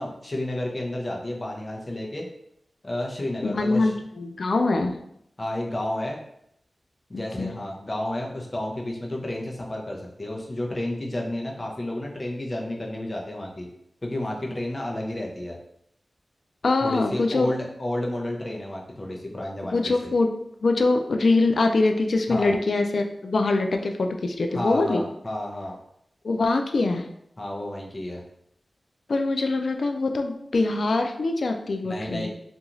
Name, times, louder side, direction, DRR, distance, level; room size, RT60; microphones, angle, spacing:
voice 1, 0.0-2.3 2.8-3.9 5.4-6.2 7.1-13.7 14.0-15.6 16.8-19.9 22.3-22.5 24.5-25.8 27.4-28.2 31.8-32.3, left 1 dB, 40° left, -1 dB, 0.7 m, -31 dB
voice 2, 3.4-5.0 7.1-7.5 16.6-17.5 19.7-20.3 20.6-25.0 26.2-27.0 29.1-32.3, left 3 dB, 75° left, 5 dB, 0.3 m, -23 dB
2.5 x 2.3 x 3.0 m, 0.74 s
cardioid pair, 50°, 0 cm